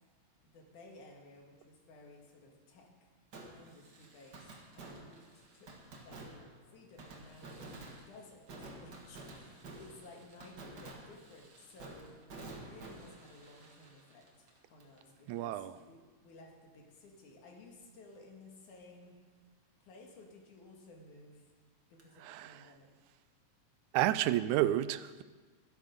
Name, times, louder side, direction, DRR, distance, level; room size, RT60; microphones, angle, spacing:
voice 1, 0.4-3.1 3.6-5.7 6.0-6.3 6.7-19.2 19.8-21.5 21.9-22.9, left 2 dB, 90° left, 0 dB, 3.4 m, -56 dB
Fireworks, 3.3-15.0 15.3-15.4 22.0-22.1, right 2 dB, 40° right, 1.9 m, -51 dB
voice 2, 15.3-15.8 22.2-22.7 23.9-25.2, right 14 dB, 85° right, 15 dB, 1.9 m, -31 dB
13.0 x 12.0 x 5.3 m, 1.4 s
omnidirectional pair, 3.4 m